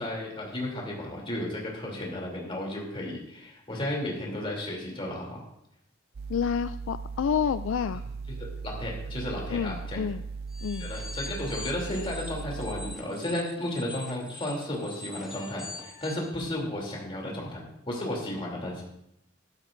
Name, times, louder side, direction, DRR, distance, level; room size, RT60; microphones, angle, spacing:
voice 1, 0.0-5.4 8.4-10.0 10.8-18.8, left 1 dB, 25° left, -2 dB, 3.0 m, -33 dB
sound 1, 6.1-13.0, right 4 dB, 50° right, 0.4 m, -38 dB
voice 2, 6.3-8.0 9.5-10.2 10.6-10.9, left 7 dB, 70° left, 13 dB, 0.3 m, -29 dB
sound 2, 10.5-16.3, left 2 dB, ahead, 1.8 m, -44 dB
15.0 x 12.5 x 2.6 m, 0.80 s
head